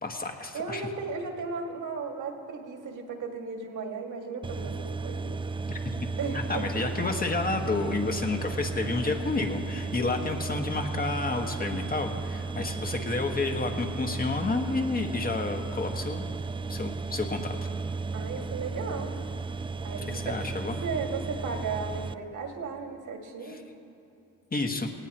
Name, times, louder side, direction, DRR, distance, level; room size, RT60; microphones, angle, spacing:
voice 1, 0.0-0.9 5.7-5.8 6.3-16.4 16.7-17.6 20.1-20.8 23.4-23.6 24.5-24.9, left 3 dB, 25° left, 3 dB, 1.6 m, -30 dB
voice 2, 0.5-5.4 6.2-6.8 18.1-19.1 19.8-20.4 20.8-23.6, right 4 dB, 60° right, 2 dB, 2.2 m, -35 dB
sound 1, 4.4-22.1, right 4 dB, 15° right, 0.4 m, -34 dB
18.5 x 17.0 x 3.1 m, 2.9 s
cardioid pair, 80°, 35 cm